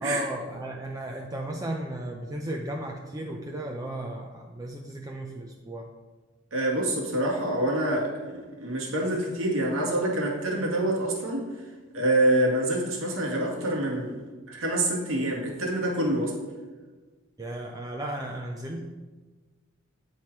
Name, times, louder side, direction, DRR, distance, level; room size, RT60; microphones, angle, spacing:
voice 1, 0.0-5.9 17.4-18.8, right 1 dB, 20° right, 1 dB, 0.5 m, -35 dB
voice 2, 6.5-11.5 11.9-14.2 14.5-16.3, right 1 dB, 85° right, -2 dB, 1.8 m, -26 dB
9.2 x 4.5 x 4.7 m, 1.3 s
head